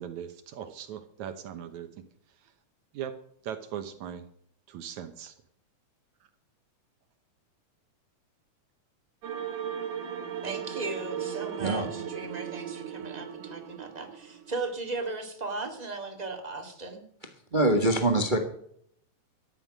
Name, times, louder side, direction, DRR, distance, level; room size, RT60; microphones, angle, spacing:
voice 1, 0.0-2.5 2.9-3.2 3.4-4.2 4.7-5.3, right 9 dB, 70° right, 9 dB, 2.3 m, -39 dB
sound 1, 9.2-14.6, right 9 dB, 85° right, 3.0 m, -37 dB
voice 2, 10.4-17.0, right 3 dB, 15° right, 4 dB, 2.0 m, -37 dB
voice 3, 11.6-11.9 17.5-18.4, right 1 dB, 40° right, 5 dB, 0.6 m, -24 dB
13.5 x 11.0 x 6.3 m, 0.67 s
omnidirectional pair, 3.6 m